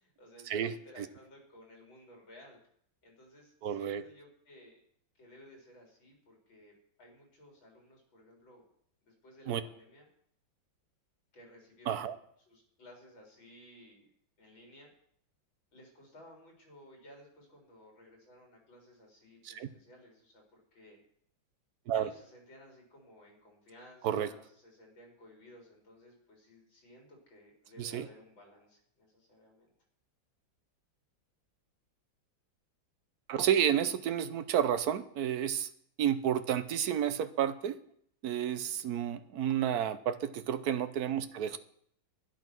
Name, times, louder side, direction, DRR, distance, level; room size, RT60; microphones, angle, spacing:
voice 1, 0.0-2.6 3.0-4.8 5.1-6.7 7.0-8.7 9.0-10.0 11.3-12.2 12.5-14.1 14.4-14.9 15.7-21.0 21.9-29.7 38.7-38.8, left 1 dB, 85° left, 0 dB, 4.7 m, -57 dB
voice 2, 3.6-4.0 9.5-9.6 11.9-12.2 19.4-19.7 21.9-22.1 24.0-24.3 27.8-28.1 33.3-35.7 36.0-37.8 38.2-41.6, right 9 dB, 60° right, 12 dB, 1.2 m, -31 dB
12.0 x 11.0 x 6.0 m, 0.65 s
omnidirectional pair, 2.1 m